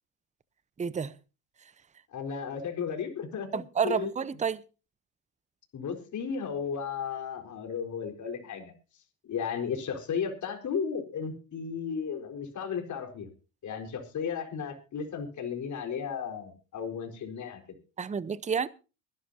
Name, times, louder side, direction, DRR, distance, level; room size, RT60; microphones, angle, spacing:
voice 1, 0.8-1.1 3.5-4.6 18.0-18.7, right 6 dB, 15° right, 0.8 m, -30 dB
voice 2, 2.1-3.5 3.8-4.1 5.7-8.7 9.3-13.3 13.6-17.6, left 6 dB, 45° left, 4.6 m, -34 dB
24.0 x 11.5 x 2.8 m
supercardioid pair, 85°, 40 cm